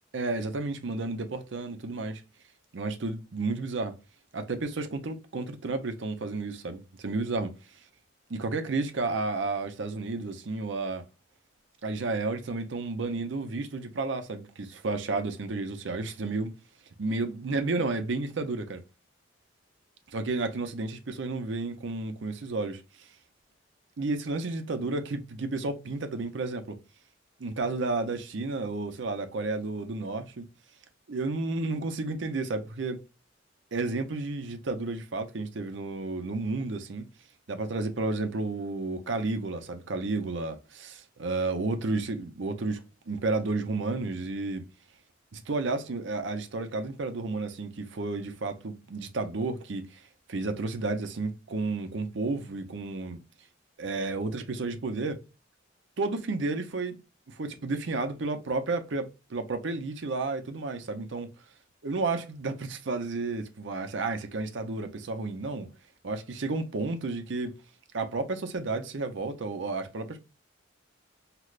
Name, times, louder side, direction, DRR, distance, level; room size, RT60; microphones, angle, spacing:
voice 1, 0.1-2.2 2.7-3.9 4.3-7.6 8.3-11.1 11.8-16.5 17.0-18.8 20.1-23.1 24.0-26.8 27.4-30.4 31.1-33.0 33.7-37.0 37.5-44.6 45.3-50.0 50.3-53.2 53.8-55.2 56.0-57.0 57.3-61.3 61.8-65.7 66.0-67.5 67.9-70.2, right 3 dB, 65° right, 0.6 m, -32 dB
3.2 x 2.9 x 2.4 m
head